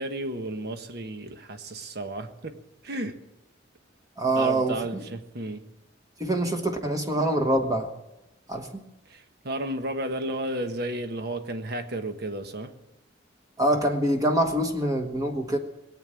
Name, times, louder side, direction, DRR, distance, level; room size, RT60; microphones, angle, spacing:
voice 1, 0.0-2.5 2.8-3.2 4.3-5.6 9.1-12.7, right 1 dB, 55° right, 8 dB, 1.3 m, -33 dB
voice 2, 4.2-5.0 6.2-7.9 8.5-8.7 13.6-15.6, right 1 dB, 20° right, 4 dB, 1.2 m, -25 dB
20.0 x 8.7 x 7.6 m, 0.95 s
head